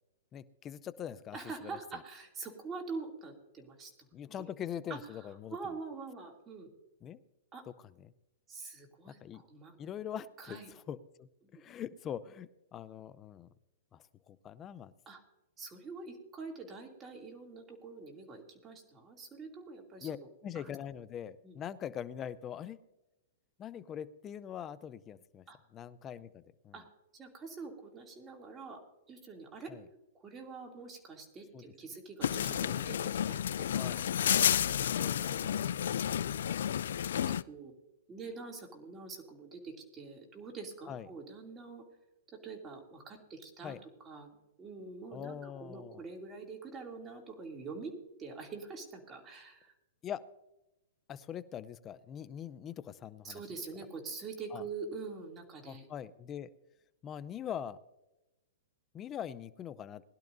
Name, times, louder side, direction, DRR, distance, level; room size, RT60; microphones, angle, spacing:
voice 1, 0.3-1.8 4.1-5.6 7.0-7.2 8.0-8.1 9.1-9.4 9.8-13.5 13.9-14.9 20.0-20.2 20.4-22.8 23.6-25.4 25.7-26.8 29.7-29.8 31.5-31.7 32.6-32.9 33.8-34.1 35.0-36.6 40.9-41.1 43.6-43.8 45.1-46.0 50.0-50.2 51.1-53.4 54.5-54.6 55.6-56.5 57.0-57.8 58.9-60.0, left 9 dB, 25° left, 16 dB, 0.6 m, -43 dB
voice 2, 1.3-3.9 4.4-4.5 4.9-5.0 5.5-6.7 7.5-7.6 8.5-9.8 10.4-10.7 11.4-11.6 15.1-15.2 15.6-20.3 20.5-20.7 21.4-21.6 25.5-25.6 26.7-26.8 27.1-28.8 29.1-29.7 30.2-34.0 34.6-35.7 36.9-37.7 38.1-41.9 42.3-44.3 44.6-47.9 48.2-49.7 53.2-55.8, right 4 dB, 20° right, 2 dB, 2.7 m, -45 dB
sound 1, 32.2-37.4, left 9 dB, 75° left, 0.3 m, -31 dB
21.0 x 11.5 x 2.7 m, 0.98 s
hypercardioid pair, 145°, 0 cm